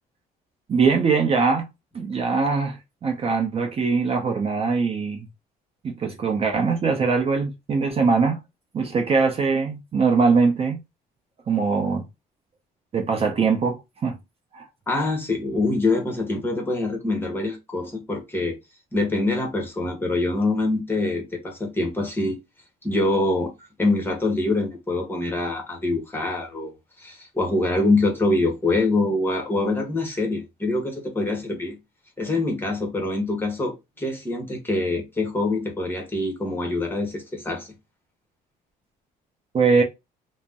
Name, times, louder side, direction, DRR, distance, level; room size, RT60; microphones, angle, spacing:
voice 1, 0.7-1.7 1.9-5.3 5.8-8.4 8.7-10.8 11.5-12.1 12.9-14.2 14.5-14.7 39.5-39.8, right 4 dB, 35° right, 0.6 m, -22 dB
voice 2, 14.9-18.6 18.9-22.4 22.8-23.5 23.8-26.7 27.0-31.8 32.2-37.7, left 2 dB, 15° left, 1.0 m, -24 dB
2.5 x 2.1 x 3.4 m
cardioid pair, 110°, 17 cm